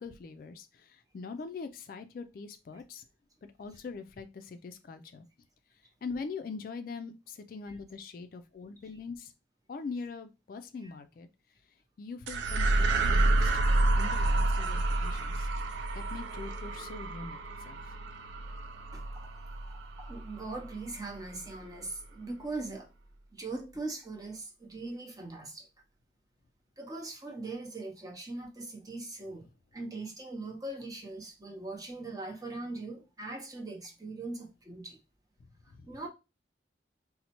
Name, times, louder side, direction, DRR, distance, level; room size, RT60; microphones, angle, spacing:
voice 1, 0.0-3.0 3.4-5.3 6.0-9.3 9.7-11.3 12.0-13.7 14.0-15.5 15.9-18.0 35.7-35.9, left 4 dB, 50° left, 0.3 m, -42 dB
sound 1, 12.3-20.9, right 2 dB, 80° right, 0.4 m, -29 dB
voice 2, 18.9-19.3 19.6-22.9 23.3-25.7 26.8-29.5 29.7-35.0 35.9-36.1, right 2 dB, 20° right, 0.6 m, -40 dB
4.1 x 2.1 x 2.9 m
head